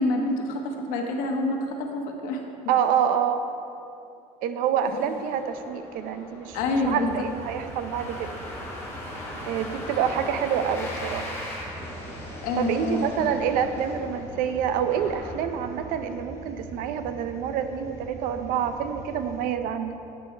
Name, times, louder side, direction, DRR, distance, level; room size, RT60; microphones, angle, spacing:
voice 1, 0.0-2.4 6.5-7.2 12.4-13.3, left 2 dB, 85° left, 2 dB, 1.2 m, -27 dB
voice 2, 2.7-3.4 4.4-6.6 6.9-8.3 9.5-11.4 12.6-20.0, right 8 dB, 80° right, 9 dB, 0.6 m, -27 dB
sound 1, 4.8-16.0, left 1 dB, 15° left, 2.2 m, -39 dB
sound 2, 6.5-19.5, right 1 dB, 20° right, 0.9 m, -43 dB
9.6 x 8.1 x 4.4 m, 2.7 s
cardioid pair, 155°, 14 cm